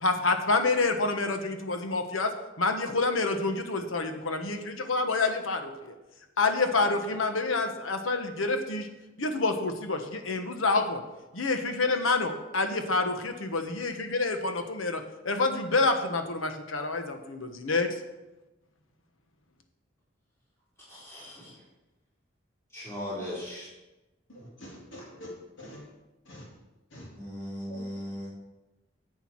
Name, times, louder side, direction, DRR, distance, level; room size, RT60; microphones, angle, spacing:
voice 1, 0.0-5.9 6.4-8.9 9.2-11.0 11.3-18.0, left 3 dB, 85° left, 6 dB, 1.2 m, -28 dB
voice 2, 20.9-21.5 22.7-23.7 27.2-28.3, equal, 15° left, -9 dB, 4.2 m, -38 dB
voice 3, 24.3-25.3 25.6-25.8 26.3-26.4 26.9-27.1 27.7-27.8, equal, 70° left, -3 dB, 3.1 m, -45 dB
11.5 x 7.9 x 4.6 m, 1.0 s
head